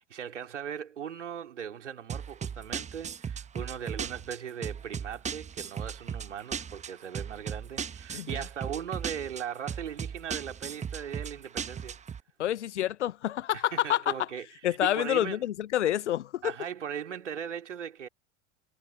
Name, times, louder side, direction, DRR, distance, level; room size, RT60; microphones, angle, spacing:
voice 1, 0.0-12.0 13.5-15.5 16.4-18.1, right 8 dB, 70° right, 2.9 m, -39 dB
sound 1, 2.1-12.2, right 7 dB, 20° right, 1.3 m, -37 dB
voice 2, 12.4-14.1 14.6-16.5, left 12 dB, 70° left, 0.7 m, -28 dB
figure-of-eight pair, 75°, 37 cm